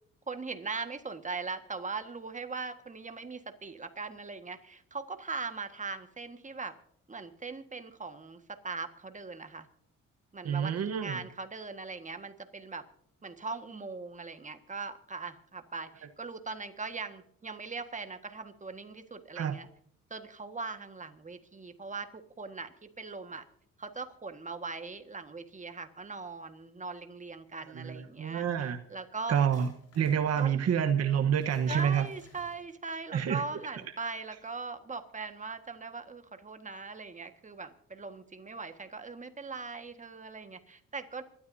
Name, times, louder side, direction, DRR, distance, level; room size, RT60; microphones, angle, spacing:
voice 1, 0.3-6.7 7.1-9.7 10.3-12.8 13.2-19.7 20.1-23.4 23.8-29.4 30.3-30.5 31.7-41.2, right 4 dB, 25° right, 1.6 m, -40 dB
voice 2, 10.4-11.2 19.4-19.6 27.7-28.8 29.3-29.7 29.9-32.1 33.1-33.4, right 8 dB, 55° right, 1.2 m, -28 dB
sound 1, 29.3-33.0 33.2-33.3 33.8-34.2, left 2 dB, 55° left, 6.2 m, -54 dB
26.0 x 12.5 x 2.7 m
cardioid pair, 90°, 30 cm